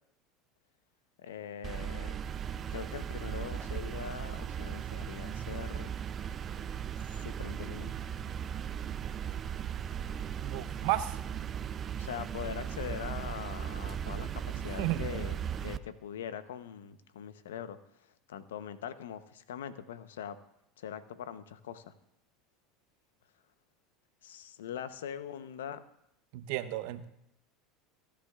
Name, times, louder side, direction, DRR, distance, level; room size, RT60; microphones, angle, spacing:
voice 1, 1.2-2.2 2.7-5.9 7.1-8.1 12.0-17.8 18.3-20.4 20.8-21.9 24.2-25.8, left 9 dB, 80° left, 12 dB, 0.9 m, -42 dB
sound 1, 1.6-15.8, right 8 dB, 35° right, 0.6 m, -37 dB
voice 2, 10.4-11.2 14.8-15.1 26.3-27.0, right 14 dB, 65° right, 11 dB, 0.9 m, -33 dB
27.0 x 10.5 x 2.4 m, 0.79 s
hypercardioid pair, 85°, 0 cm